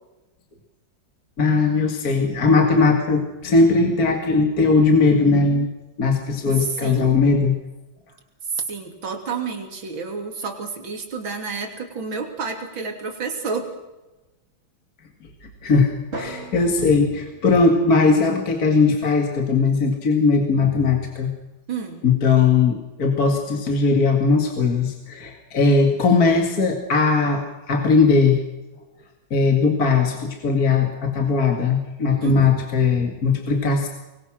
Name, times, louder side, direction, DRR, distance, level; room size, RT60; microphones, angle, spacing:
voice 1, 1.4-5.7 6.0-7.5 15.6-21.3 22.0-28.4 29.3-33.9, left 4 dB, 50° left, 3 dB, 2.5 m, -19 dB
voice 2, 6.8-7.2 8.6-13.7 21.7-22.0 32.2-32.6, right 5 dB, 75° right, 3 dB, 3.7 m, -30 dB
Drum, 16.1-18.4, right 2 dB, 30° right, 3.9 m, -38 dB
24.5 x 21.5 x 6.3 m, 1.0 s
omnidirectional pair, 2.1 m